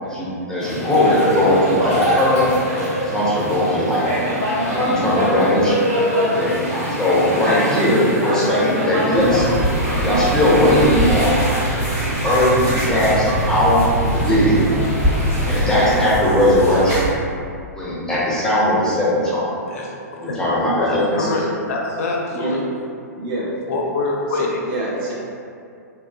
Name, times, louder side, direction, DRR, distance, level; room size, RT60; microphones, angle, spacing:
voice 1, 0.0-2.5 3.1-4.1 4.6-5.8 6.2-6.6 6.9-9.5 9.9-11.4 12.0-13.8 14.1-14.7 15.4-17.0 17.7-19.4 20.1-21.3 25.0-25.1, left 1 dB, 5° left, -7 dB, 0.5 m, -18 dB
sound 1, 0.6-15.9, equal, 65° right, 1.1 m, -24 dB
sound 2, 9.2-17.1, right 1 dB, 25° right, 1.1 m, -23 dB
voice 2, 20.8-22.7 23.7-24.6, left 3 dB, 60° left, 0 dB, 0.4 m, -24 dB
voice 3, 23.1-23.5 24.3-25.1, right 2 dB, 40° right, -6 dB, 0.7 m, -27 dB
3.0 x 2.3 x 2.2 m, 2.4 s
figure-of-eight pair, 110°, 9 cm